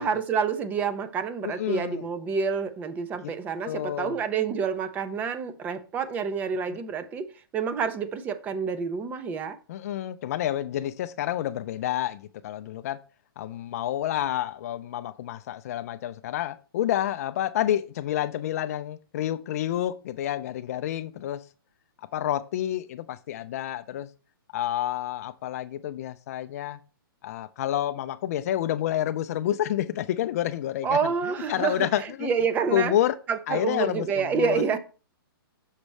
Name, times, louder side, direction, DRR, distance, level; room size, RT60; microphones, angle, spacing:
voice 1, 0.0-7.3 7.5-9.6 30.8-32.9 33.3-34.8, right 6 dB, 15° right, 0.4 m, -28 dB
voice 2, 1.4-2.0 3.2-3.3 3.6-4.1 9.7-13.0 13.4-21.4 22.0-24.1 24.5-26.8 27.2-32.3 32.7-33.2 33.5-34.6, left 12 dB, 40° left, 0.4 m, -29 dB
6.4 x 6.0 x 3.2 m
hypercardioid pair, 155°, 13 cm